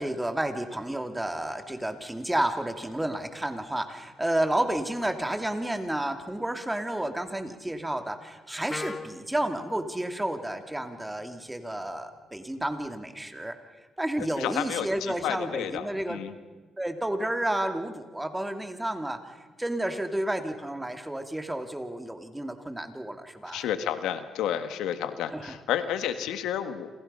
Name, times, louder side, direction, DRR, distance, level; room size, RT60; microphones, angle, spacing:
voice 1, 0.0-13.5 14.0-16.2 16.8-23.7 25.3-25.5, right 1 dB, 10° right, 7 dB, 2.5 m, -31 dB
Wind instrument woodwind instrument, 8.7-12.6, left 3 dB, 30° left, 1.7 m, -44 dB
voice 2, 14.4-16.3 23.5-26.9, left 10 dB, 90° left, 10 dB, 1.6 m, -31 dB
28.0 x 28.0 x 5.6 m, 1.3 s
cardioid pair, 90°, 0 cm